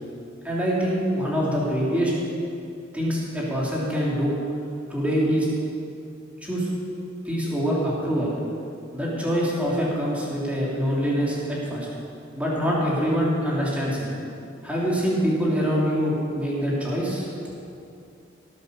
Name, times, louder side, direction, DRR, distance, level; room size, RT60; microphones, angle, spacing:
voice 1, 0.4-2.1 2.9-4.4 4.9-5.5 6.4-6.7 7.2-8.3 8.9-11.9 12.4-14.1 14.6-17.3, equal, 5° right, -6 dB, 3.1 m, -24 dB
18.0 x 8.1 x 6.9 m, 2.6 s
head